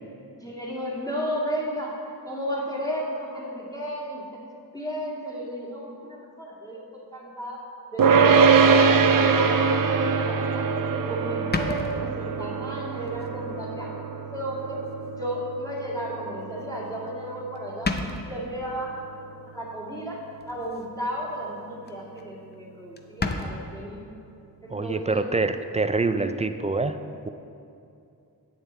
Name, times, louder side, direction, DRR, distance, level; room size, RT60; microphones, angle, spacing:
voice 1, 0.4-2.0 2.2-4.4 4.7-7.6 7.9-10.7 11.1-14.8 15.2-17.9 18.3-18.9 19.5-20.2 20.5-24.0 24.6-25.3 26.1-26.3, equal, 10° left, -6 dB, 2.1 m, -34 dB
sound 1, 8.0-19.3, right 5 dB, 60° right, 0.7 m, -23 dB
sound 2, 10.7-10.8 11.5-12.4 13.1-13.3 13.8-13.9 15.2-15.3 16.9-17.3 17.5-17.6 17.8-18.5 20.4-20.9 21.2-21.5 21.8-21.9 22.2-22.3 22.5-22.6 23.0-23.5, left 3 dB, 25° left, 0.6 m, -31 dB
voice 2, 24.7-27.0, right 3 dB, 20° right, 9 dB, 0.3 m, -25 dB
10.5 x 8.8 x 4.3 m, 2.6 s
wide cardioid pair, 140°, 36 cm